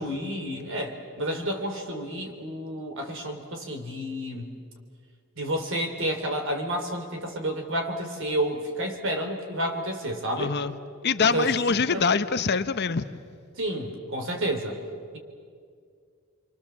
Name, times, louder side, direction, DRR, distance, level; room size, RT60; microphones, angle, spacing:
voice 1, 0.0-4.5 5.4-10.5 11.2-12.1 13.6-14.8, right 1 dB, 60° right, 5 dB, 3.7 m, -30 dB
voice 2, 10.4-10.7 11.0-13.0, left 5 dB, 50° left, 12 dB, 0.8 m, -24 dB
29.5 x 24.0 x 7.4 m, 2.1 s
head